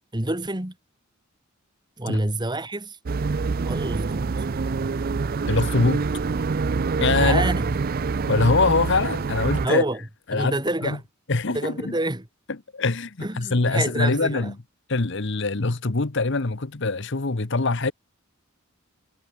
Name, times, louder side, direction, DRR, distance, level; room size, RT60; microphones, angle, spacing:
voice 1, 0.1-0.8 2.0-3.0 3.6-4.3 7.1-7.8 9.6-10.0 10.3-11.0 11.5-12.3 13.2-14.5, right 1 dB, 20° right, 2.0 m, -27 dB
sound 1, 3.1-9.7, right 4 dB, 45° right, 0.4 m, -25 dB
voice 2, 5.5-6.0 7.0-7.5 8.3-9.8 10.3-10.6 10.8-11.0 11.3-11.9 12.7-14.5 14.9-17.9, left 3 dB, 60° left, 1.1 m, -23 dB
head